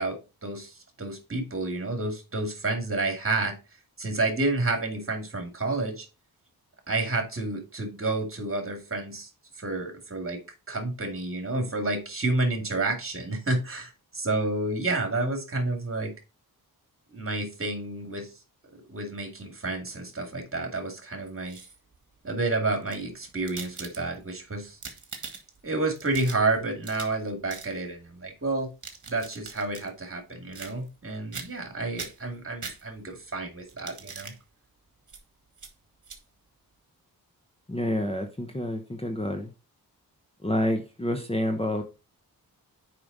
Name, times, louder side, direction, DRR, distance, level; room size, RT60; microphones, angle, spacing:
voice 1, 0.0-3.6 4.0-6.1 6.9-9.3 9.6-10.4 10.7-16.1 17.1-18.3 18.9-21.6 22.2-24.8 25.6-28.7 29.1-34.3, right 2 dB, 35° right, 2.3 m, -30 dB
sound 1, 21.3-22.0 22.7-24.3 24.7-25.6 26.0-27.2 27.5-27.7 28.6-29.9 30.5-31.0 31.3-31.7 32.0-33.2 33.7-34.4 35.1-35.2 35.6-35.7 36.0-36.2, right 5 dB, 50° right, 1.5 m, -42 dB
voice 2, 37.7-39.5 40.4-41.8, left 1 dB, 15° left, 0.9 m, -28 dB
6.8 x 5.1 x 3.9 m
cardioid pair, 75°, 37 cm